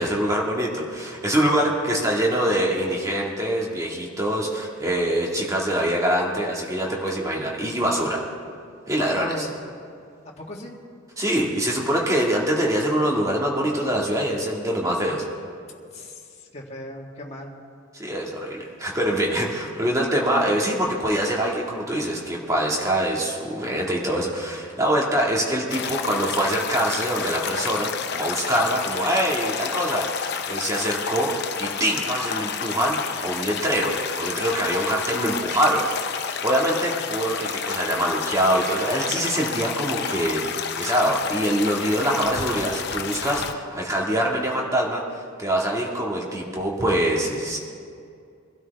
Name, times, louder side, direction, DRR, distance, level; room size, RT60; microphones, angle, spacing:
voice 1, 0.0-8.2 8.9-9.5 11.2-15.3 17.9-35.9 36.1-47.6, right 1 dB, 15° right, -2 dB, 1.9 m, -24 dB
voice 2, 9.0-9.5 10.4-10.7 15.9-16.2 16.5-17.5, left 1 dB, 30° left, -2 dB, 1.7 m, -35 dB
sound 1, 25.7-43.5, left 6 dB, 55° left, 0.7 m, -30 dB
23.5 x 12.5 x 3.5 m, 2.4 s
head